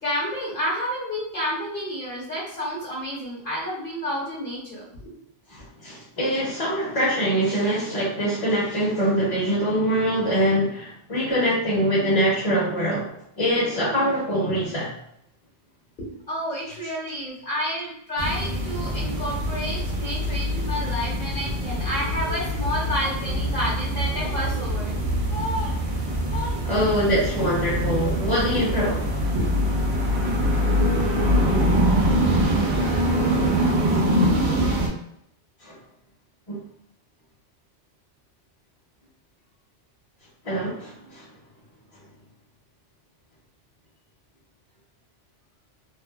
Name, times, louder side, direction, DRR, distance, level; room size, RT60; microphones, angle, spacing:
voice 1, 0.0-5.2 16.0-25.0 25.3-25.7 26.3-26.5, equal, 50° left, -6 dB, 1.0 m, -30 dB
voice 2, 5.5-14.9 26.6-29.2 33.9-34.0 35.6-35.8 36.5-36.6 40.4-41.3, equal, 35° left, -8 dB, 0.8 m, -24 dB
sound 1, 18.2-34.9, equal, 65° right, 0.9 m, -24 dB
2.6 x 2.4 x 2.2 m, 0.73 s
omnidirectional pair, 1.2 m